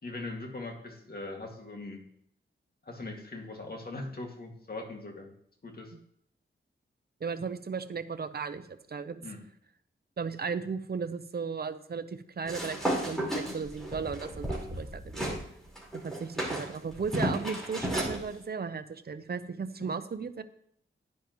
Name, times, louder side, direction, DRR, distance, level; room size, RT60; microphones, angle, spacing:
voice 1, 0.0-2.0 2.8-5.3 5.6-5.9 9.2-9.4 19.8-19.9, left 2 dB, 45° left, 1 dB, 2.2 m, -40 dB
voice 2, 7.2-9.2 10.2-15.4 15.9-20.4, right 5 dB, 50° right, 11 dB, 0.8 m, -36 dB
sound 1, 12.5-15.4 15.7-18.2, equal, ahead, 4.4 m, -33 dB
10.5 x 10.0 x 3.1 m, 0.69 s
cardioid pair, 70°, 21 cm